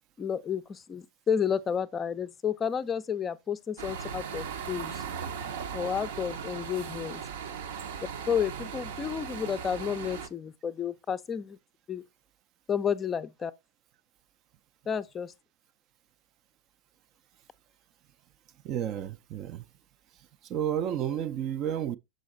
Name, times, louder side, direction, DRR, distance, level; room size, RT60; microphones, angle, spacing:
voice 1, 0.2-5.0 5.7-7.2 8.3-11.6 11.9-12.0 12.7-13.5 14.9-15.3, left 7 dB, 25° left, 0.4 m, -31 dB
sound 1, 3.8-10.3, right 7 dB, 65° right, 0.8 m, -38 dB
voice 2, 18.6-19.6 20.5-22.0, right 10 dB, 40° right, 0.4 m, -31 dB
6.3 x 5.0 x 3.9 m
hypercardioid pair, 100°, 0 cm